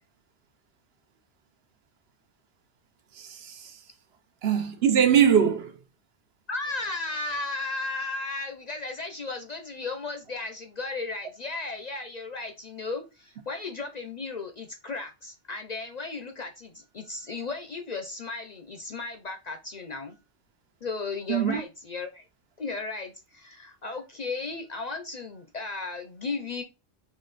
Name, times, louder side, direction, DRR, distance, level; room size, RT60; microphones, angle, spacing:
voice 1, 3.1-3.8 4.4-5.8 21.3-21.6, right 8 dB, 65° right, 0.9 m, -22 dB
voice 2, 6.5-20.2 20.8-22.2 22.6-26.6, left 3 dB, 50° left, 0.5 m, -35 dB
3.9 x 3.1 x 3.9 m
omnidirectional pair, 1.2 m